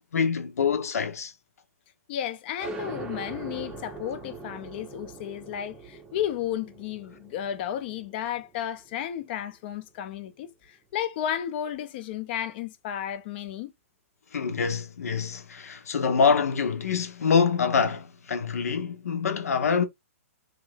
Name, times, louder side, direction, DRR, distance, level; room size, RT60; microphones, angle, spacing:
voice 1, 0.1-1.3 14.3-19.8, left 6 dB, 85° left, 0.8 m, -25 dB
voice 2, 2.1-13.7, left 10 dB, 45° left, 0.6 m, -33 dB
sound 1, 2.6-9.9, right 4 dB, 10° right, 0.6 m, -42 dB
3.3 x 2.5 x 3.2 m
hypercardioid pair, 145°, 8 cm